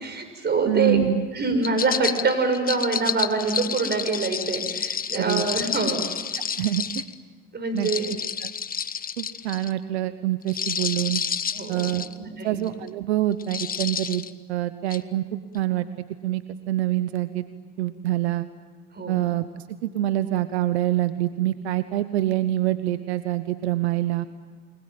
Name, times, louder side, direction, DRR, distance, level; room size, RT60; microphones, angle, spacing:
voice 1, 0.0-1.0 1.3-6.0 7.5-8.1 11.5-12.6 19.0-19.2, right 4 dB, 30° right, 8 dB, 6.3 m, -25 dB
voice 2, 0.7-1.3 5.1-5.5 6.3-7.0 7.7-7.9 8.4-8.5 9.2-11.2 11.7-12.1 12.3-14.2 14.5-17.4 17.8-18.5 19.1-24.3, right 14 dB, 85° right, 12 dB, 1.1 m, -26 dB
sound 1, 1.6-7.1 7.8-9.7 10.4-12.1 12.7-12.9 13.4-14.3 14.9-15.0, left 7 dB, 30° left, 1.1 m, -30 dB
29.0 x 21.0 x 9.2 m, 1.3 s
hypercardioid pair, 75°, 32 cm